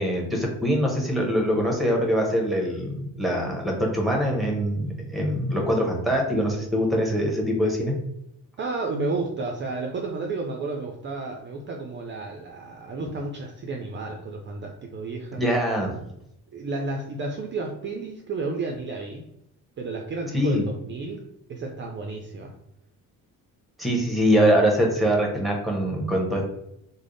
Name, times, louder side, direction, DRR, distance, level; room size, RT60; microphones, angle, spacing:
voice 1, 0.0-7.9 15.4-15.9 20.3-20.6 23.8-26.5, equal, ahead, 0 dB, 0.8 m, -23 dB
voice 2, 8.6-15.4 16.5-19.2 19.8-22.5, right 3 dB, 35° right, 2 dB, 0.4 m, -32 dB
3.4 x 2.1 x 3.8 m, 0.80 s
cardioid pair, 135°, 34 cm